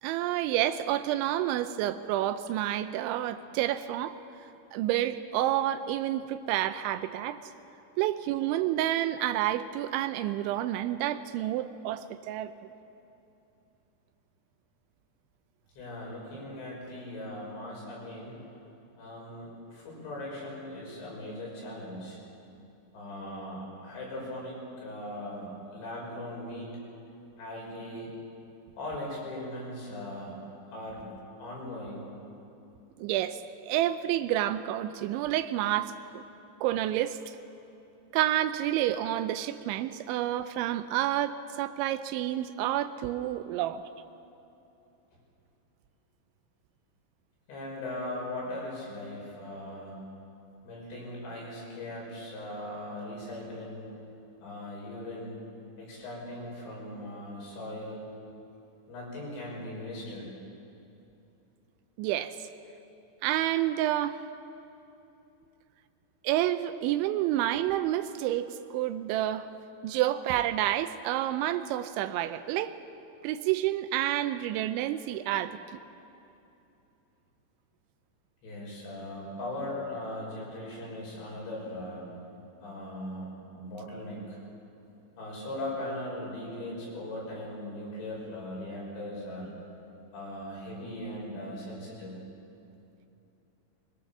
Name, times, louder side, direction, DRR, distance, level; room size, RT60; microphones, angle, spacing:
voice 1, 0.0-4.2 4.7-7.4 8.0-12.5 33.0-36.2 36.6-37.2 38.1-43.8 62.0-62.4 63.2-64.2 66.2-69.5 69.8-72.8 73.2-75.6, right 13 dB, 85° right, 10 dB, 3.0 m, -29 dB
voice 2, 15.8-18.4 19.0-22.2 22.9-26.8 27.4-28.1 28.8-30.4 30.7-31.1 31.4-32.1 47.5-50.0 50.6-53.9 54.4-55.4 55.8-58.0 58.9-60.3 78.4-82.1 82.6-84.4 85.2-89.5 90.1-92.2, left 1 dB, 70° left, -3 dB, 8.1 m, -39 dB
22.5 x 21.5 x 7.2 m, 2.8 s
omnidirectional pair, 5.3 m